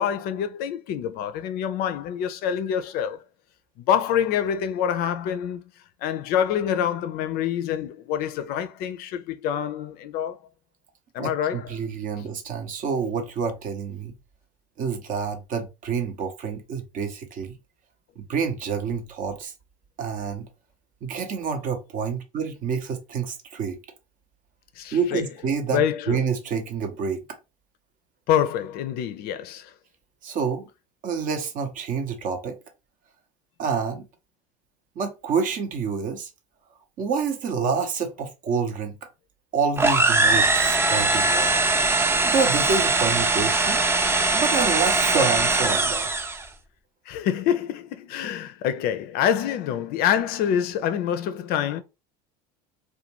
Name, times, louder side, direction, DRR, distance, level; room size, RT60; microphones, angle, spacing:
voice 1, 0.0-3.2 3.9-5.6 6.0-10.4 11.1-11.7 24.8-25.2 25.7-26.2 28.3-29.7 47.1-51.8, left 9 dB, 50° left, 0.4 m, -26 dB
voice 2, 11.2-14.2 14.8-17.5 18.2-19.5 20.0-20.5 21.0-23.8 24.9-27.4 30.2-30.7 31.0-32.6 33.6-34.1 35.0-36.3 37.0-39.1 39.5-41.6 42.2-43.8 44.3-46.1, right 5 dB, 40° right, 0.7 m, -28 dB
sound 1, 39.8-46.5, right 3 dB, 10° right, 0.4 m, -21 dB
2.4 x 2.2 x 2.8 m
hypercardioid pair, 90°, 20 cm